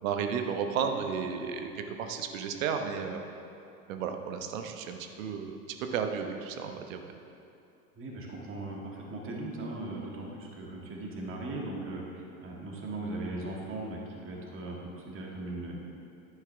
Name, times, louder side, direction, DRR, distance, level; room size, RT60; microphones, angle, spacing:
voice 1, 0.0-3.2 3.9-7.1, right 7 dB, 60° right, 5 dB, 1.0 m, -33 dB
voice 2, 8.0-15.8, right 2 dB, 30° right, -2 dB, 2.0 m, -38 dB
10.5 x 9.4 x 3.5 m, 2.6 s
hypercardioid pair, 85°, 45 cm